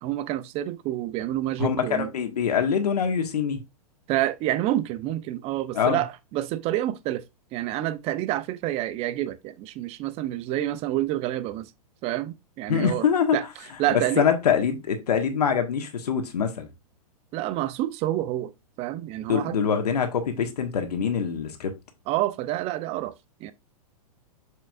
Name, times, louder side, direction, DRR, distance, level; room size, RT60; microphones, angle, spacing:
voice 1, 0.0-2.1 4.1-7.2 7.5-11.7 12.0-13.1 13.3-13.4 13.8-14.3 17.3-18.5 18.8-19.6 22.1-23.1 23.4-23.5, right 14 dB, 30° right, 0.7 m, -28 dB
voice 2, 1.6-3.6 5.7-6.0 12.7-13.4 13.9-16.7 19.3-21.7, left 7 dB, 80° left, 1.6 m, -24 dB
6.7 x 6.4 x 2.5 m
hypercardioid pair, 130°, 20 cm